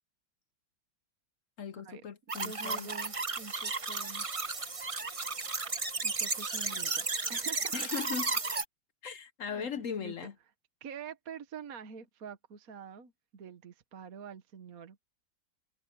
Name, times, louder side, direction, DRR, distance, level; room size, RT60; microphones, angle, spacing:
voice 1, 1.6-2.9 7.7-8.3 9.0-10.3, left 7 dB, 60° left, 0.9 m, -38 dB
sound 1, 2.3-8.6, right 4 dB, 30° right, 0.7 m, -34 dB
voice 2, 2.4-4.3 6.0-7.9 9.5-10.2 10.8-15.0, right 6 dB, 50° right, 1.5 m, -46 dB
omnidirectional pair, 2.1 m